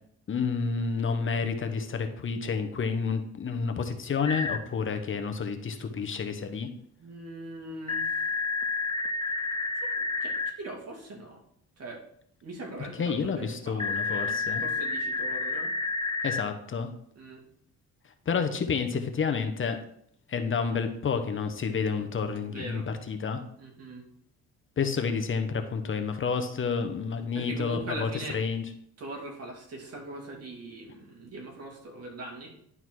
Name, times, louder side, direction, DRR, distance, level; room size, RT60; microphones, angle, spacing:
voice 1, 0.3-6.7 13.0-14.6 16.2-16.9 18.3-19.8 20.3-23.4 24.8-28.6, left 5 dB, 40° left, 7 dB, 0.9 m, -30 dB
sound 1, 4.3-4.6 7.9-10.5 13.8-16.4, left 3 dB, 15° left, 0.6 m, -30 dB
voice 2, 7.0-8.2 9.2-9.3 9.7-11.4 11.8-12.0 12.4-15.8 17.1-17.4 22.5-22.9 23.6-24.0 27.3-28.4 29.0-32.5, right 2 dB, 55° right, 0 dB, 2.5 m, -41 dB
11.0 x 4.0 x 4.7 m, 0.67 s
cardioid pair, 90°, 30 cm